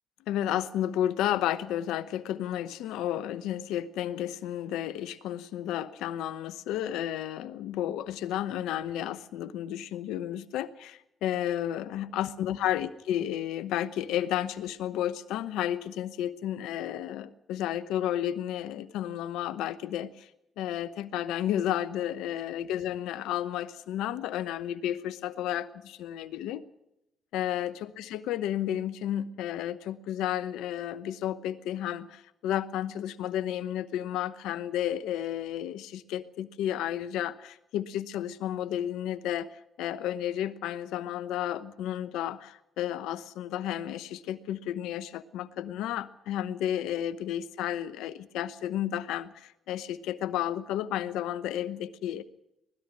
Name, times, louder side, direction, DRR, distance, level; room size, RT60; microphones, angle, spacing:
voice 1, 0.3-20.3 20.6-26.6 27.3-52.2, left 11 dB, 85° left, 14 dB, 0.9 m, -32 dB
20.0 x 13.0 x 9.8 m, 0.88 s
supercardioid pair, 60°, 0 cm